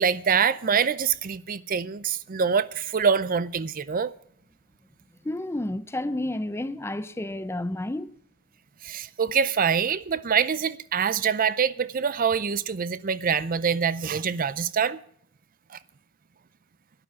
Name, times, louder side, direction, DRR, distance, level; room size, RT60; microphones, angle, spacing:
voice 1, 0.0-4.1 8.8-15.0 15.7-15.8, right 6 dB, 40° right, 0.5 m, -25 dB
voice 2, 5.2-8.1, left 1 dB, 10° left, 0.5 m, -30 dB
12.0 x 9.8 x 7.2 m
head